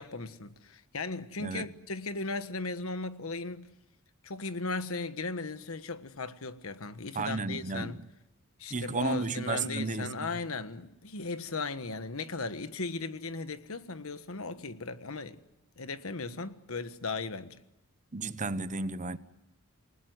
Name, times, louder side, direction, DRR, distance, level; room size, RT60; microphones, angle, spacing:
voice 1, 0.0-3.7 4.2-8.0 8.6-15.4 15.8-17.6, left 3 dB, 70° left, 1.4 m, -37 dB
voice 2, 7.1-8.0 8.7-10.3 18.1-19.2, right 3 dB, 35° right, 0.9 m, -33 dB
28.5 x 19.5 x 9.4 m
head